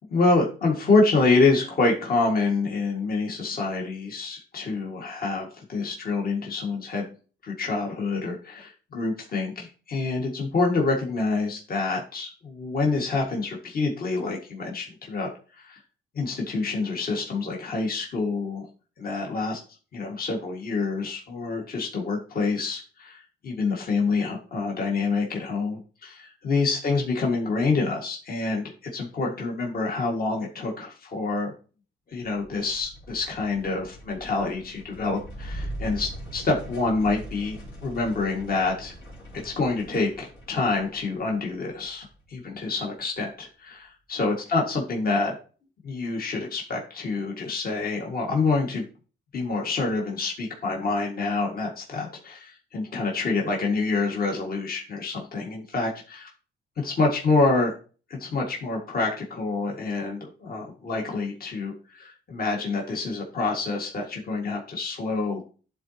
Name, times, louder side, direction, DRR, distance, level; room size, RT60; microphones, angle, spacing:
voice 1, 0.1-7.1 7.4-15.3 15.6-15.8 16.1-18.7 19.0-19.6 19.9-31.5 32.1-38.9 39.3-45.3 45.8-48.8 49.3-56.3 56.8-57.7 58.1-65.4, left 3 dB, 50° left, -1 dB, 1.9 m, -27 dB
sound 1, 32.2-42.8, right 1 dB, 75° left, 2.8 m, -41 dB
11.0 x 3.9 x 2.9 m, 0.37 s
cardioid pair, 90°, 20 cm